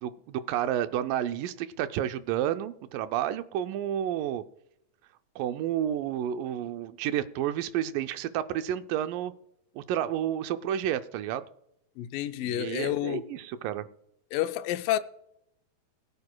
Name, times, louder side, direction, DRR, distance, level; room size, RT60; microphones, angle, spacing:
voice 1, 0.0-4.4 5.4-9.3 9.8-11.5 12.4-13.9, right 11 dB, 80° right, 2.1 m, -30 dB
voice 2, 12.0-13.3 14.3-15.0, left 13 dB, 80° left, 2.2 m, -29 dB
21.5 x 9.6 x 2.2 m
omnidirectional pair, 4.0 m